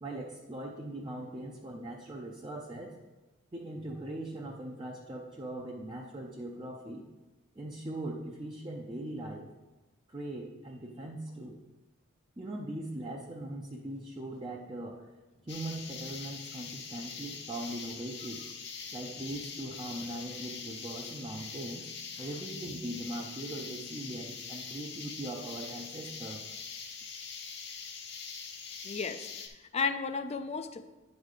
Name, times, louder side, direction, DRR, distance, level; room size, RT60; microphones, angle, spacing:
voice 1, 0.0-2.9 3.5-7.0 7.6-9.5 10.1-11.6 12.4-15.0 15.4-18.4 18.9-21.9 22.2-26.4, right 1 dB, 20° right, -1 dB, 0.5 m, -40 dB
sound 1, 15.5-29.5, left 5 dB, 55° left, 0.9 m, -43 dB
voice 2, 28.8-31.0, left 5 dB, 30° left, 10 dB, 0.4 m, -34 dB
9.8 x 4.0 x 4.9 m, 1.1 s
head